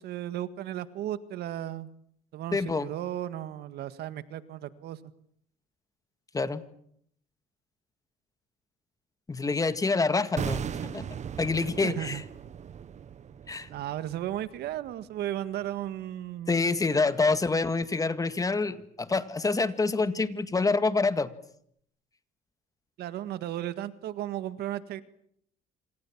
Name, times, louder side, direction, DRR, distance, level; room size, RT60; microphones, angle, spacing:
voice 1, 0.0-1.9 2.3-5.0 11.6-12.2 13.7-16.8 23.0-25.0, right 12 dB, 75° right, 13 dB, 1.9 m, -35 dB
voice 2, 2.5-2.9 6.3-6.6 9.3-11.1 11.4-12.2 13.5-13.7 16.5-21.3, left 3 dB, 20° left, 11 dB, 2.0 m, -27 dB
sound 1, 10.4-15.4 15.6-15.8, right 8 dB, 45° right, 1.5 m, -38 dB
27.0 x 26.5 x 7.5 m, 0.68 s
cardioid pair, 110°, 17 cm